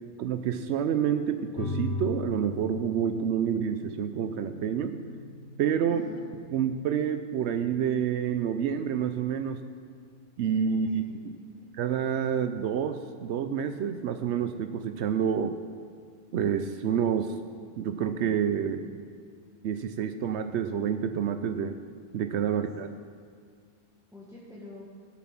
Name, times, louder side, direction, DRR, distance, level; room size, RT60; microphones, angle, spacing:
voice 1, 0.2-5.0 5.6-6.1 6.5-9.6 10.4-11.3 11.7-15.5 16.3-17.3 17.8-19.0 19.6-21.7 22.1-22.9, right 8 dB, 85° right, 8 dB, 0.9 m, -28 dB
sound 1, 1.6-12.6, left 1 dB, 85° left, 1.4 m, -41 dB
voice 2, 5.9-6.2 10.7-11.7 22.5-22.6 24.1-24.9, left 2 dB, 5° right, -6 dB, 1.7 m, -47 dB
15.0 x 7.2 x 5.9 m, 2.1 s
omnidirectional pair, 1.1 m